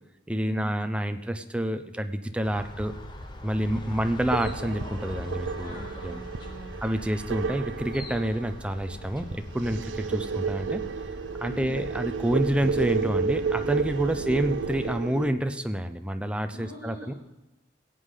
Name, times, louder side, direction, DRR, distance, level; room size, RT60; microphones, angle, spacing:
voice 1, 0.3-2.9 3.4-6.2 6.8-10.8 11.4-17.1, right 1 dB, 5° right, 8 dB, 0.6 m, -28 dB
sound 1, 2.4-14.9, left 1 dB, 25° left, 1.0 m, -41 dB
voice 2, 3.6-4.0 5.6-6.7 9.9-10.2 11.4-11.8 14.1-14.3 16.5-17.2, right 2 dB, 65° left, -6 dB, 5.2 m, -44 dB
sound 2, 4.3-15.3, right 5 dB, 90° right, 0.5 m, -32 dB
18.0 x 8.3 x 3.8 m, 1.0 s
head